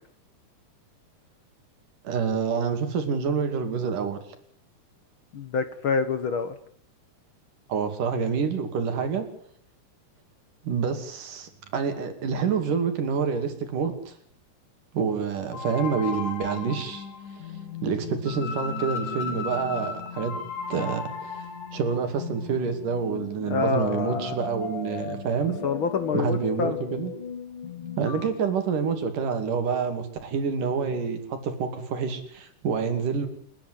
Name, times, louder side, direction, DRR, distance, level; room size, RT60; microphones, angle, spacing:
voice 1, 2.0-4.2 7.7-9.3 10.6-14.1 14.9-17.1 17.8-20.4 20.7-21.4 21.7-25.6 26.1-27.1 28.0-33.3, right 6 dB, 85° right, 7 dB, 4.2 m, -27 dB
voice 2, 5.3-6.5 23.5-24.3 25.6-26.8, left 5 dB, 55° left, 11 dB, 1.5 m, -27 dB
sound 1, 15.5-28.3, left 6 dB, 85° left, 4.3 m, -36 dB
29.0 x 10.5 x 9.6 m, 0.63 s
omnidirectional pair, 3.6 m